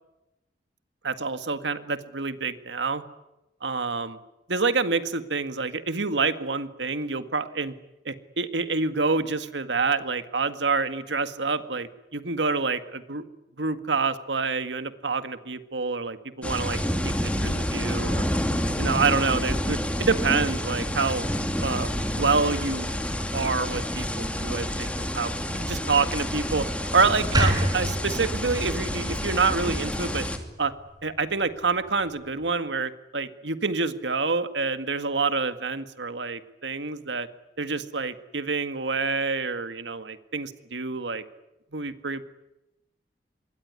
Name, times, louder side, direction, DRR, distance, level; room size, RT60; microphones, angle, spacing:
voice 1, 1.0-3.0 3.6-4.2 4.5-7.7 8.1-13.2 13.6-16.8 17.0-18.2 18.8-21.3 21.6-21.9 22.1-22.9 23.3-26.7 26.9-30.3 30.6-30.7 31.0-37.3 37.6-41.2 41.7-42.2, right 4 dB, 90° right, 10 dB, 1.9 m, -27 dB
sound 1, 16.4-30.4, equal, 5° left, 2.7 m, -28 dB
sound 2, 27.3-30.5, right 1 dB, 25° right, 4.8 m, -28 dB
26.5 x 22.5 x 9.8 m, 0.93 s
head